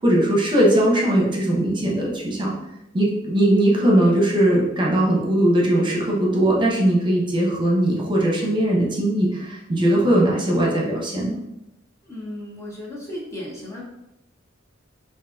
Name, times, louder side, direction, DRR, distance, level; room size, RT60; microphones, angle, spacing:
voice 1, 0.0-2.5 2.9-11.4, right 1 dB, 25° right, -3 dB, 0.9 m, -19 dB
voice 2, 12.0-13.8, left 1 dB, 15° left, -4 dB, 0.7 m, -35 dB
3.8 x 2.7 x 3.5 m, 0.87 s
head